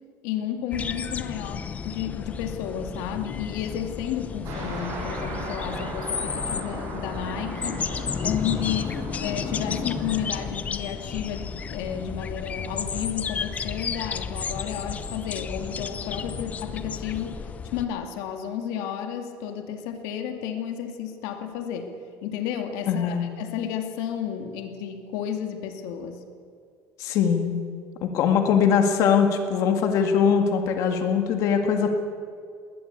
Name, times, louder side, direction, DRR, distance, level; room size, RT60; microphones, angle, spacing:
voice 1, 0.2-21.9 22.2-26.2, left 9 dB, 80° left, 5 dB, 2.3 m, -32 dB
sound 1, 0.7-17.9, left 6 dB, 20° left, 0.8 m, -32 dB
sound 2, 4.4-10.4, right 3 dB, 45° right, 6.9 m, -38 dB
voice 2, 22.9-23.2 27.0-27.5 28.0-31.9, left 7 dB, 50° left, 5 dB, 2.0 m, -21 dB
20.5 x 18.5 x 8.4 m, 2.2 s
cardioid pair, 170°, 7 cm